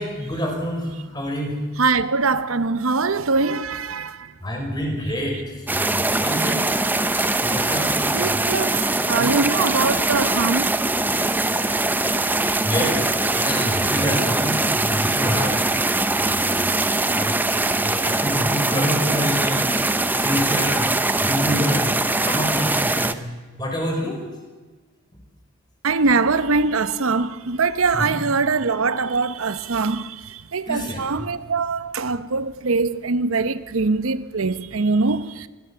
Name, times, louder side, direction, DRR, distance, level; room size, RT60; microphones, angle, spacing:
voice 1, 0.0-1.6 4.4-5.4 5.7-6.6 7.2-7.9 8.2-8.4 12.6-16.6 17.1-19.9 20.2-20.9 21.2-21.9 22.2-23.3 23.6-24.2 27.9-28.1 30.7-31.2, equal, 20° left, 4.8 m, -27 dB
voice 2, 1.8-4.3 7.2-7.5 8.1-10.7 25.8-35.5, right 4 dB, 80° right, 0.8 m, -22 dB
sound 1, 5.7-23.1, right 2 dB, 10° right, 0.7 m, -22 dB
24.5 x 16.5 x 6.9 m
head